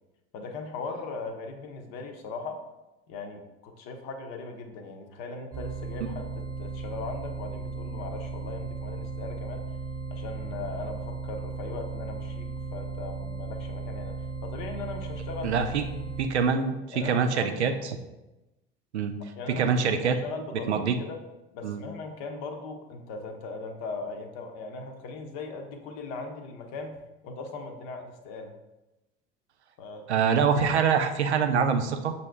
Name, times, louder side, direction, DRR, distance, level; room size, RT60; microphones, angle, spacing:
voice 1, 0.3-2.6 3.1-9.6 10.1-15.7 16.6-17.7 19.4-21.2 21.5-28.5 29.8-30.1, left 3 dB, 55° left, 5 dB, 0.7 m, -39 dB
sound 1, 5.5-16.3, right 4 dB, 25° right, 0.9 m, -36 dB
voice 2, 15.4-15.8 16.2-18.0 18.9-19.1 19.5-20.2 20.7-21.0 21.6-21.8 30.1-32.1, right 6 dB, 85° right, 7 dB, 0.5 m, -25 dB
5.5 x 2.7 x 3.3 m, 1.0 s
figure-of-eight pair, 70°, 33 cm